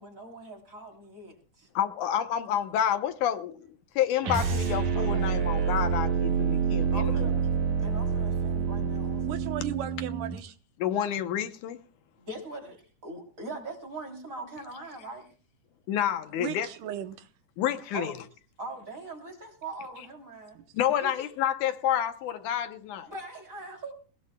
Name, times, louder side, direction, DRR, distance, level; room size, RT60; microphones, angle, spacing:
voice 1, 0.0-1.7 4.9-5.3 6.9-7.4 7.8-9.4 12.2-15.3 17.9-18.3 18.6-20.6 21.0-21.1 23.1-23.9, right 2 dB, 25° right, 3.5 m, -41 dB
voice 2, 1.8-3.7 4.0-7.4 10.8-11.8 15.9-16.7 17.6-18.1 20.7-23.1, left 10 dB, 75° left, 2.2 m, -29 dB
sound 1, 4.2-10.4, right 6 dB, 60° right, 3.1 m, -27 dB
voice 3, 9.2-10.5 16.4-17.3, right 11 dB, 80° right, 2.4 m, -36 dB
20.5 x 20.5 x 2.2 m
omnidirectional pair, 3.8 m